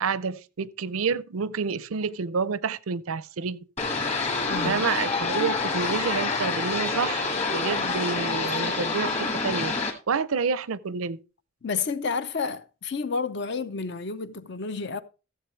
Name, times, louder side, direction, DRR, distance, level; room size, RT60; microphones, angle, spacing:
voice 1, 0.0-3.7 4.6-9.7 10.1-11.2, right 5 dB, 90° right, 0.6 m, -29 dB
sound 1, 3.8-9.9, left 3 dB, 35° left, 1.8 m, -27 dB
voice 2, 4.4-4.8 11.6-15.0, left 4 dB, 55° left, 0.6 m, -30 dB
14.5 x 7.4 x 3.2 m
head